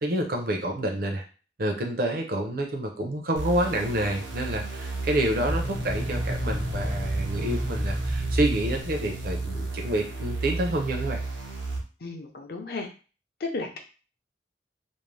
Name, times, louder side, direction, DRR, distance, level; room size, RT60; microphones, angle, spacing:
voice 1, 0.0-1.2 1.6-11.2, right 1 dB, 50° right, 3 dB, 0.6 m, -28 dB
sound 1, 3.4-11.8, right 3 dB, 90° right, 0.7 m, -33 dB
sound 2, 5.5-10.1, equal, ahead, 0.3 m, -31 dB
voice 2, 12.0-12.9 13.4-13.8, left 3 dB, 55° left, 3 dB, 0.5 m, -33 dB
2.6 x 2.0 x 3.2 m, 0.35 s
head